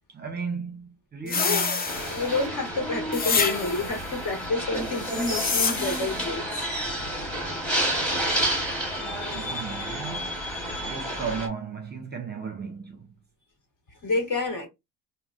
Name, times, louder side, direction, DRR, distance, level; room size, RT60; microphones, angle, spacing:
voice 1, 0.1-1.9 9.3-10.4 10.8-13.1, right 5 dB, 25° right, 0.6 m, -35 dB
voice 2, 1.2-1.8 2.1-6.7 14.0-14.7, left 3 dB, 50° left, 1.5 m, -29 dB
sound 1, 1.3-2.5 3.1-4.0 5.0-6.2, left 5 dB, 25° left, 0.4 m, -27 dB
sound 2, 1.8-11.5, right 1 dB, 5° left, 1.1 m, -30 dB
3.3 x 2.2 x 2.4 m
cardioid pair, 115°, 38 cm